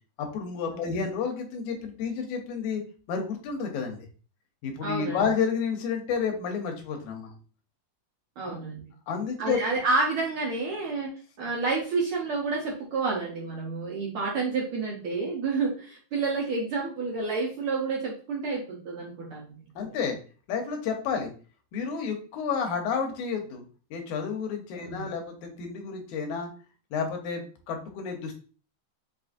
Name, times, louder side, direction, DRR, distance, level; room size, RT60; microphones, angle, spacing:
voice 1, 0.2-2.8 3.1-4.0 4.6-7.4 8.4-8.5 9.1-9.6 19.8-20.2 20.5-21.3 21.7-23.6 23.9-26.5 26.9-28.3, left 6 dB, 80° left, 4 dB, 2.2 m, -30 dB
voice 2, 4.8-5.3 8.4-8.8 9.4-11.1 11.4-19.6 24.8-25.1, right 3 dB, 75° right, -3 dB, 1.2 m, -29 dB
5.3 x 2.5 x 2.5 m, 0.38 s
omnidirectional pair, 3.4 m